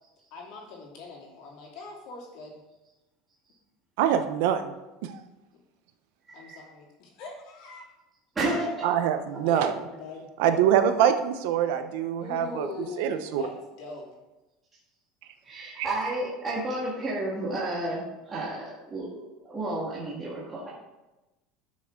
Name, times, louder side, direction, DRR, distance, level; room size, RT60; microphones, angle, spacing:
voice 1, 0.3-2.6 6.3-7.8 9.4-10.3 12.2-14.1, left 3 dB, 60° left, -3 dB, 2.9 m, -41 dB
voice 2, 4.0-4.7 5.0-5.2 8.8-9.7 10.4-12.7 13.0-13.5 15.8-15.9, right 9 dB, 75° right, 9 dB, 0.8 m, -24 dB
voice 3, 6.3-6.6 8.4-8.8 9.3-9.5 15.4-20.7, right 2 dB, 20° right, -6 dB, 1.8 m, -32 dB
12.0 x 6.3 x 3.7 m, 1.0 s
cardioid pair, 155°, 0 cm